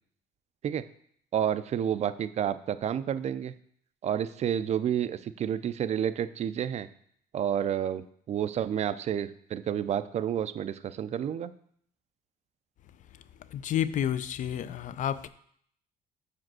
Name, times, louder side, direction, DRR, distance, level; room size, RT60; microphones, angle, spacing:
voice 1, 1.3-3.5 4.0-6.9 7.3-11.5, right 9 dB, 40° right, 13 dB, 0.4 m, -30 dB
voice 2, 13.5-15.3, left 10 dB, 50° left, 14 dB, 0.4 m, -30 dB
5.1 x 5.0 x 6.1 m, 0.65 s
cardioid pair, 110°, 17 cm